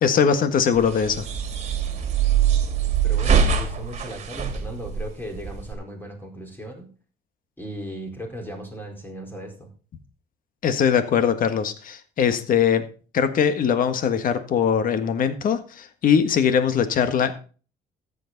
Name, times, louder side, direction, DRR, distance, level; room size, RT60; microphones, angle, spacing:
voice 1, 0.0-1.2 10.6-12.9 13.1-17.3, left 7 dB, 55° left, 10 dB, 1.6 m, -21 dB
sound 1, 0.7-5.7, right 7 dB, 40° right, 2.5 m, -23 dB
voice 2, 3.0-6.9 7.6-9.7, equal, 10° left, 2 dB, 4.4 m, -37 dB
14.0 x 8.4 x 4.0 m, 0.37 s
cardioid pair, 110°, 17 cm